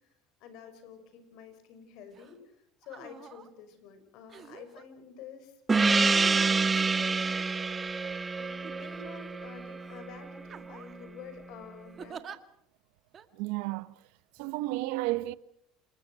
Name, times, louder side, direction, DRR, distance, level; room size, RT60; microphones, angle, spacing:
voice 1, 0.4-2.4 2.8-7.3 8.4-12.3, left 6 dB, 65° left, 6.1 m, -49 dB
sound 1, 2.1-2.3 2.8-3.5 4.3-4.8 5.8-7.9 8.6-9.4 9.8-10.0 10.5-11.1 12.0-12.4 13.1-13.3, right 7 dB, 35° right, 1.8 m, -47 dB
Gong, 5.7-10.7, right 4 dB, 20° right, 0.9 m, -27 dB
voice 2, 13.3-13.9 14.3-15.3, right 19 dB, 75° right, 1.0 m, -32 dB
28.0 x 20.0 x 6.4 m
supercardioid pair, 105°, 0 cm